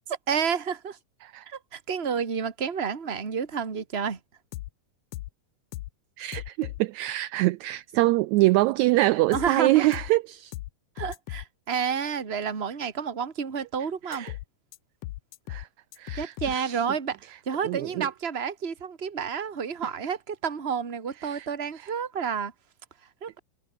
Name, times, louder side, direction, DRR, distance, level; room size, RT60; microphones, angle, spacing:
voice 1, 0.1-1.0 1.4-4.2 9.3-9.9 11.0-14.3 16.2-22.5 23.2-23.4, right 6 dB, 25° right, 1.7 m, -30 dB
sound 1, 4.5-4.7 5.1-5.3 5.7-5.9 6.3-6.8 9.3-9.5 9.9-10.1 10.5-10.7 11.0-11.4 14.1-14.4 14.7-14.8 15.0-15.6 15.9-16.5, left 17 dB, 85° left, 1.4 m, -36 dB
voice 2, 6.2-10.5 14.1-14.3 15.5-15.7 16.0-16.8 17.6-18.1 21.2-21.5 21.8-21.9, right 19 dB, 80° right, 1.7 m, -25 dB
omnidirectional pair, 3.6 m